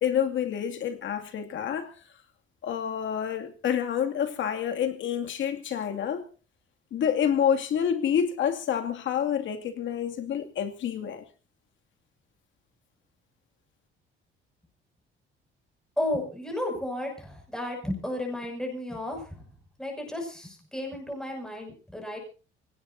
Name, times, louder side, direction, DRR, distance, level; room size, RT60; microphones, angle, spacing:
voice 1, 0.0-1.9 2.6-6.3 6.9-11.2, left 8 dB, 65° left, 2.5 m, -28 dB
voice 2, 16.0-19.4 19.8-22.2, left 1 dB, 5° left, 6.4 m, -33 dB
25.0 x 18.0 x 2.7 m
cardioid pair, 120°, 21 cm